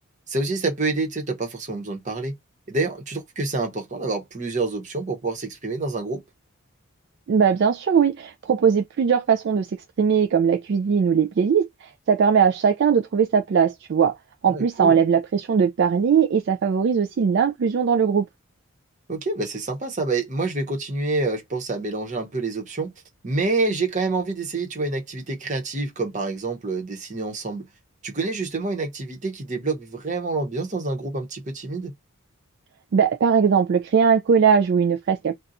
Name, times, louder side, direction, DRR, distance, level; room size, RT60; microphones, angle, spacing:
voice 1, 0.3-2.3 2.7-6.2 14.5-15.0 19.1-22.9 23.2-27.6 28.0-31.9, right 3 dB, 35° right, 0.9 m, -27 dB
voice 2, 7.3-9.7 10.0-14.2 14.4-18.2 32.9-35.4, right 6 dB, 50° right, 0.3 m, -20 dB
2.5 x 2.3 x 4.0 m
head